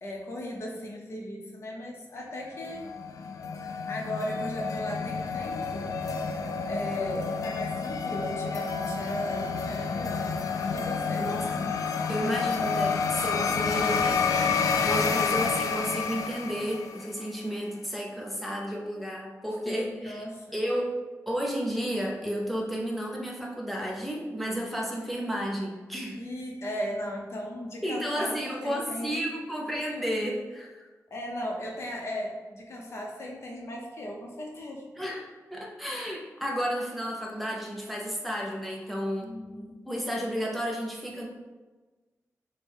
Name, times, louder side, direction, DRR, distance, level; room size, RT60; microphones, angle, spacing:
voice 1, 0.0-2.9 3.9-5.9 6.7-10.3 10.7-11.3 19.7-20.5 26.1-29.2 31.1-34.9 39.2-39.7, left 1 dB, 50° left, -1 dB, 0.8 m, -37 dB
sound 1, 2.5-17.2, left 5 dB, 85° left, 0.3 m, -29 dB
voice 2, 11.2-20.2 20.5-20.9 21.3-26.2 27.8-30.9 35.0-39.3 39.9-41.3, equal, ahead, -2 dB, 0.6 m, -32 dB
6.1 x 2.2 x 3.4 m, 1.3 s
wide cardioid pair, 165°, 6 cm